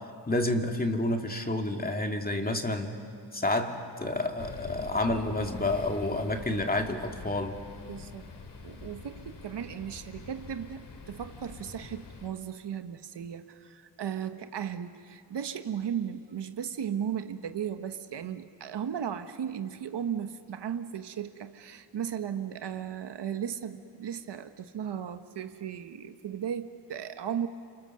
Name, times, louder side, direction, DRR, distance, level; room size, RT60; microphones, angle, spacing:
voice 1, 0.3-2.9 3.3-7.6, left 2 dB, 20° left, 3 dB, 2.3 m, -29 dB
sound 1, 4.4-12.3, left 4 dB, 75° left, 3.0 m, -45 dB
voice 2, 7.9-8.3 8.6-27.5, right 8 dB, 80° right, 8 dB, 1.3 m, -36 dB
29.5 x 28.5 x 6.7 m, 2.2 s
cardioid pair, 100°, 41 cm